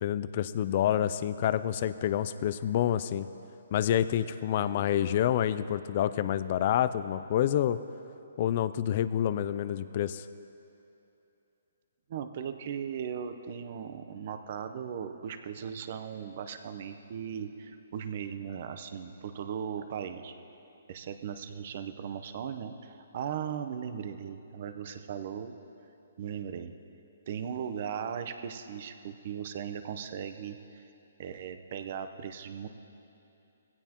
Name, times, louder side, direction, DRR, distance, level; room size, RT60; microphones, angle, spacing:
voice 1, 0.0-3.3 3.7-7.8 8.4-10.2, left 10 dB, 40° left, 14 dB, 0.4 m, -28 dB
voice 2, 12.1-20.3 20.9-25.5 26.2-26.7 27.3-30.8 31.2-32.7, right 8 dB, 45° right, 8 dB, 0.8 m, -38 dB
19.5 x 16.0 x 3.0 m, 2.8 s
hypercardioid pair, 155°, 0 cm